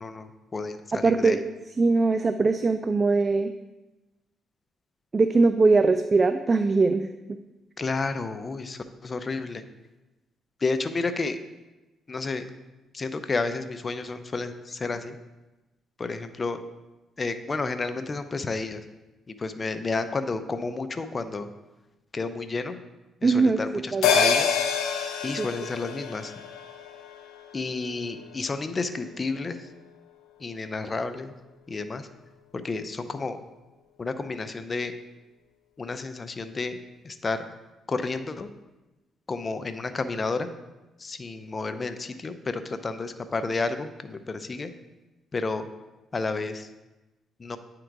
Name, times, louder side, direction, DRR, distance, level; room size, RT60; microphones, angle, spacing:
voice 1, 0.0-1.4 7.8-9.6 10.6-11.4 12.1-12.4 12.9-15.2 16.0-16.6 17.2-18.8 19.4-21.5 22.1-22.8 23.2-24.5 25.2-26.3 27.5-29.7 30.4-31.3 31.7-32.1 32.5-33.4 34.0-34.9 35.8-37.5 37.9-38.5 39.3-40.5 41.0-44.7 45.3-45.7 46.1-46.7 47.4-47.6, left 3 dB, 30° left, 10 dB, 0.5 m, -31 dB
voice 2, 0.9-1.4 1.8-3.5 5.1-7.1 23.2-23.6 23.9-24.2 25.4-25.5, right 3 dB, 30° right, 9 dB, 0.3 m, -21 dB
sound 1, 24.0-28.7 29.1-29.2, left 6 dB, 90° left, 0.6 m, -27 dB
8.9 x 3.8 x 4.6 m, 1.1 s
cardioid pair, 90°, 0 cm